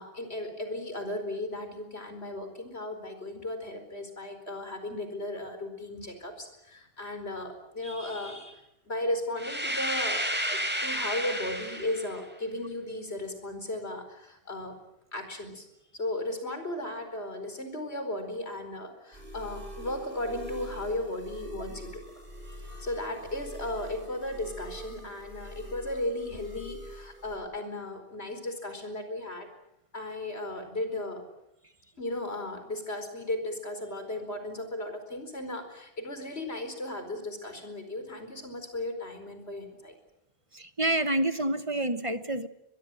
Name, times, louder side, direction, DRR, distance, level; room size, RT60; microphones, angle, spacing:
voice 1, 0.0-14.8 15.1-15.7 15.9-22.1 22.8-29.5 29.9-31.2 32.0-39.9, left 1 dB, 90° left, 5.0 m, -36 dB
sound 1, 9.4-12.2, equal, 10° right, 3.9 m, -31 dB
sound 2, 19.1-27.4, equal, 55° right, 6.6 m, -44 dB
voice 2, 40.5-42.5, right 1 dB, 30° right, 1.1 m, -28 dB
24.0 x 22.0 x 9.0 m
omnidirectional pair, 1.1 m